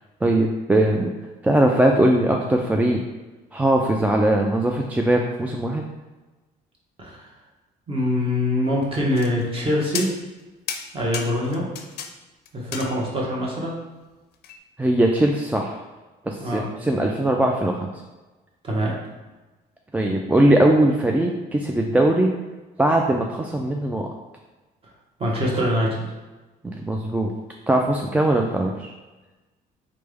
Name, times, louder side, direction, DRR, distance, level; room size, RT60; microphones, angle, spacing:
voice 1, 0.2-1.1 1.4-3.0 3.5-5.8 14.8-15.8 16.3-17.9 19.9-22.3 22.8-24.1 26.6-27.3 27.7-28.9, right 1 dB, 10° right, 1 dB, 0.3 m, -20 dB
voice 2, 7.0-7.3 7.9-10.1 10.9-11.7 12.5-13.8 16.4-16.6 18.6-18.9 25.2-26.1, left 1 dB, 35° right, -3 dB, 1.2 m, -24 dB
sound 1, 9.2-9.6 9.9-10.4 10.7-12.1 12.5-13.3 14.4-14.6, left 7 dB, 70° left, 0.5 m, -33 dB
3.9 x 3.4 x 3.4 m, 1.2 s
cardioid pair, 110°, 17 cm